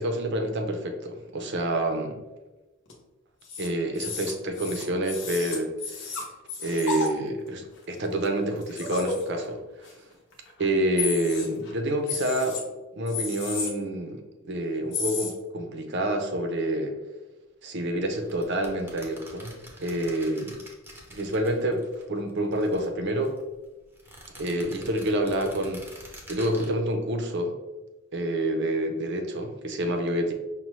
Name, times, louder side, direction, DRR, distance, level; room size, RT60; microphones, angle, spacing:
voice 1, 0.0-2.2 3.6-6.2 6.6-9.6 10.6-12.6 12.9-16.9 17.6-20.6 21.1-23.3 24.4-27.6 28.1-30.3, right 1 dB, 55° right, 5 dB, 0.6 m, -28 dB
sound 1, 2.9-3.0 3.4-3.7 3.9-7.1 7.8-7.9 8.2-8.3 8.6-9.5 9.8-9.9 10.3-10.7 11.0-11.7 12.1-12.6 13.1-13.7 14.9-15.3, left 4 dB, 60° left, 0.8 m, -32 dB
sound 2, 18.2-22.0 22.3-23.4 23.9-26.7, right 1 dB, 10° right, 0.7 m, -46 dB
5.4 x 2.2 x 3.0 m, 1.1 s
head